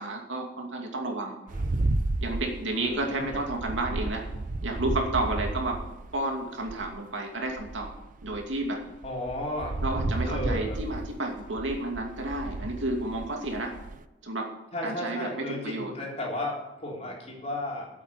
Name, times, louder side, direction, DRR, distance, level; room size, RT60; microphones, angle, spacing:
voice 1, 0.0-1.4 2.2-4.3 4.6-5.8 6.1-7.9 8.2-8.8 9.8-13.8 14.2-14.5 14.8-15.9, right 2 dB, 85° right, 1 dB, 2.6 m, -31 dB
sound 1, 1.5-7.0 7.5-14.0, right 2 dB, 45° right, 0.5 m, -33 dB
voice 2, 2.8-3.4 9.0-9.8 10.2-10.8 14.7-17.9, left 1 dB, 35° left, -3 dB, 3.7 m, -34 dB
8.7 x 8.4 x 8.4 m, 0.96 s
head